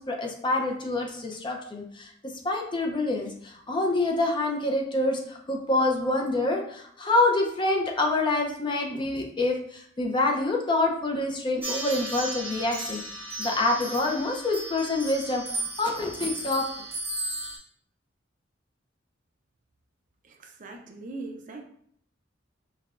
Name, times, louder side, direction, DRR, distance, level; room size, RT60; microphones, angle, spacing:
voice 1, 0.0-2.1 2.4-13.0 13.4-15.4 15.8-16.6, left 2 dB, 25° left, 1 dB, 0.5 m, -26 dB
sound 1, 11.6-17.6, right 2 dB, 10° right, 1.1 m, -35 dB
voice 2, 20.2-21.6, right 3 dB, 40° right, 3 dB, 0.5 m, -40 dB
5.5 x 2.2 x 2.4 m, 0.66 s
head